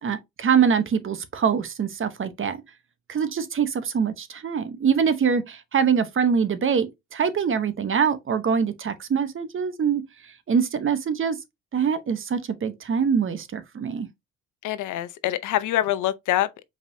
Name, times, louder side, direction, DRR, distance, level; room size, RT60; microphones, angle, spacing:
voice 1, 0.0-2.6 3.1-10.0 10.5-11.4 11.7-14.1, right 7 dB, 45° right, 0.9 m, -24 dB
voice 2, 14.6-16.6, left 13 dB, 80° left, 0.6 m, -25 dB
5.0 x 3.5 x 2.6 m
cardioid pair, 90°, 30 cm